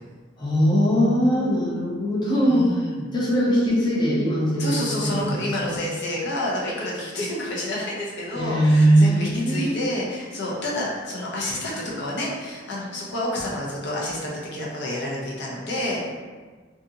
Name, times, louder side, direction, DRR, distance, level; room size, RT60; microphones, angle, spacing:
voice 1, 0.4-2.7 3.1-5.8 8.4-9.8, equal, 25° left, -7 dB, 0.6 m, -21 dB
voice 2, 2.4-3.0 4.6-16.1, left 1 dB, 60° left, -5 dB, 0.7 m, -29 dB
2.6 x 2.4 x 2.7 m, 1.4 s
head